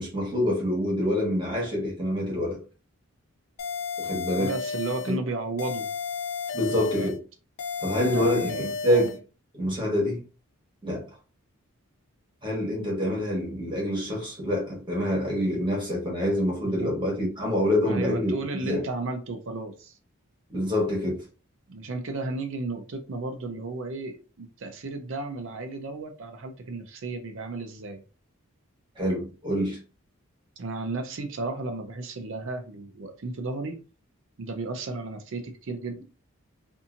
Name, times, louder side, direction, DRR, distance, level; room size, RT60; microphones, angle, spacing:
voice 1, 0.0-2.6 4.0-4.5 5.1-5.2 6.5-7.2 7.8-9.2 9.5-10.2 10.8-11.0 12.4-18.8 20.5-21.2 29.0-29.8, left 1 dB, 20° right, 1.2 m, -26 dB
sound 1, 3.6-5.2 5.6-7.2 7.6-9.2, left 6 dB, 85° left, 0.5 m, -33 dB
voice 2, 4.4-5.9 6.6-7.1 8.0-8.7 15.5-15.7 16.6-16.9 17.8-20.0 21.7-28.0 30.6-33.8 34.4-36.0, right 3 dB, 55° right, 0.5 m, -34 dB
2.7 x 2.6 x 2.4 m
head